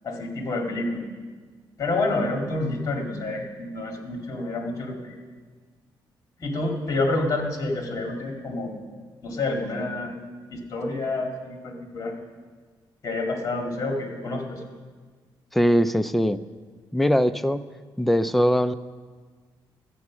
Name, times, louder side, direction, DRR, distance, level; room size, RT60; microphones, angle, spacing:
voice 1, 0.0-1.0 1.8-5.1 6.4-8.7 9.2-10.1 10.5-12.2 13.0-14.6, left 2 dB, 40° left, 2 dB, 2.2 m, -28 dB
voice 2, 15.5-16.4 16.9-17.6 18.0-18.7, equal, ahead, 11 dB, 0.3 m, -21 dB
13.0 x 8.3 x 6.1 m, 1.5 s
cardioid pair, 135°, 8 cm